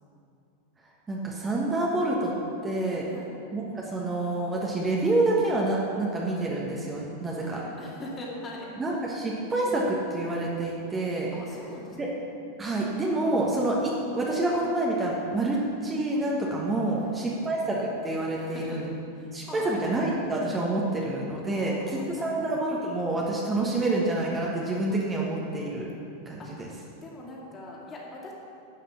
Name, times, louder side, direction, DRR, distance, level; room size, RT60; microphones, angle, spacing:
voice 1, 1.1-2.3 2.6-3.1 3.5-7.6 8.8-11.3 12.0-12.1 12.6-15.6 15.8-18.8 19.3-25.9 26.2-26.7, right 2 dB, 15° right, -3 dB, 1.3 m, -27 dB
voice 2, 7.2-8.7 9.2-9.3 11.3-12.3 13.2-13.6 16.9-17.5 18.4-18.8 19.1-19.8 21.5-22.4 26.4-26.5 27.0-28.3, left 1 dB, 25° left, -3 dB, 2.4 m, -43 dB
12.0 x 5.8 x 7.1 m, 2.6 s
figure-of-eight pair, 90°, 0 cm